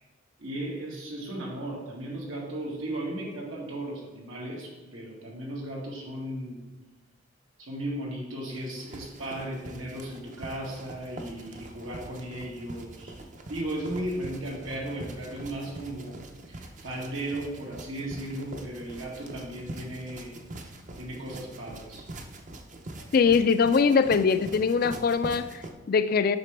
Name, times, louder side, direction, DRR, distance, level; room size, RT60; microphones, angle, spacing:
voice 1, 0.4-6.6 7.6-13.1 13.5-20.4 21.0-22.0, right 1 dB, 90° right, -3 dB, 2.0 m, -36 dB
sound 1, 8.5-25.7, right 1 dB, 40° right, 0.6 m, -43 dB
voice 2, 23.1-26.4, left 5 dB, 45° left, 12 dB, 0.3 m, -22 dB
7.7 x 5.9 x 3.4 m, 1.3 s
head